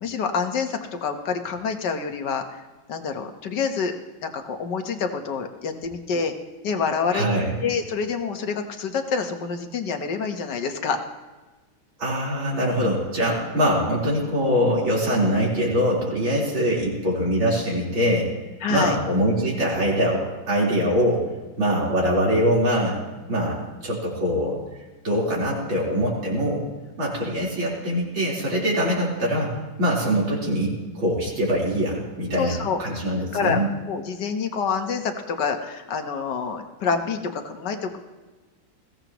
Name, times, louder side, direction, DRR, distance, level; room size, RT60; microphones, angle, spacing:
voice 1, 0.0-2.6 2.9-4.0 4.2-6.3 6.6-7.3 7.6-11.0 18.6-19.0 32.3-32.8 33.3-33.6 33.9-38.0, left 5 dB, 60° left, 5 dB, 1.8 m, -27 dB
voice 2, 7.1-7.5 12.0-18.3 18.7-21.3 21.6-23.0 23.3-24.5 25.0-26.7 27.0-29.5 29.8-33.7, equal, 80° right, -5 dB, 4.9 m, -23 dB
21.5 x 16.0 x 3.0 m, 1.2 s
omnidirectional pair, 2.2 m